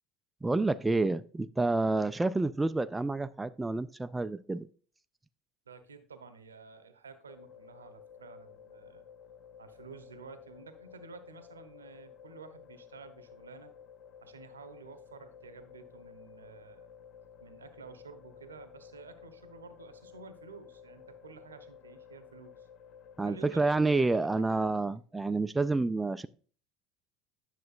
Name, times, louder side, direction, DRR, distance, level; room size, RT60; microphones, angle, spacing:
voice 1, 0.4-4.7 23.2-26.3, right 3 dB, 10° right, 0.3 m, -29 dB
voice 2, 5.7-9.1 9.6-13.7 14.2-16.9 17.4-22.7 23.2-24.7, right 5 dB, 80° right, 0.8 m, -51 dB
sound 1, 7.3-24.3, left 7 dB, 45° left, 0.8 m, -53 dB
10.5 x 6.4 x 2.4 m
figure-of-eight pair, 65°, 0 cm